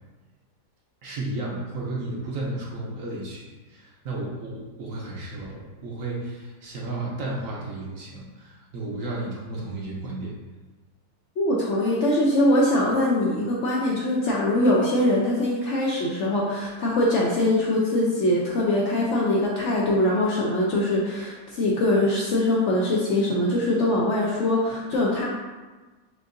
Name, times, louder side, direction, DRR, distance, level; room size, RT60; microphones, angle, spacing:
voice 1, 1.0-10.3, right 2 dB, 60° right, -3 dB, 1.0 m, -33 dB
voice 2, 11.4-25.3, left 1 dB, 65° left, -4 dB, 0.7 m, -22 dB
6.4 x 2.5 x 2.5 m, 1.3 s
omnidirectional pair, 1.7 m